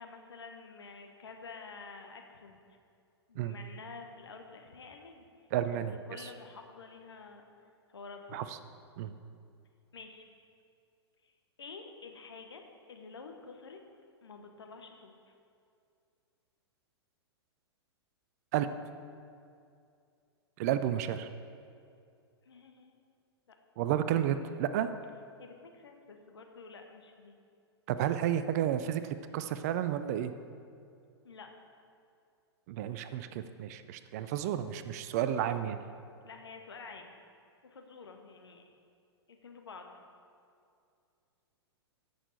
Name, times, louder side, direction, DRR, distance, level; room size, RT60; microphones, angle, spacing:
voice 1, 0.0-2.6 3.3-5.5 6.1-7.5 7.9-8.4 9.9-10.3 11.2-11.3 11.6-13.8 14.2-15.1 22.4-23.0 25.4-27.4 31.2-31.5 36.2-37.1 37.6-38.6 39.3-39.9, left 4 dB, 65° left, 4 dB, 1.1 m, -49 dB
voice 2, 5.5-6.0 8.3-8.4 9.0-9.1 18.5-18.7 20.6-21.3 23.8-24.9 27.9-29.0 29.3-30.3 32.7-35.8, right 10 dB, 35° right, 11 dB, 0.4 m, -31 dB
14.5 x 6.4 x 4.1 m, 2.4 s
figure-of-eight pair, 105°, 14 cm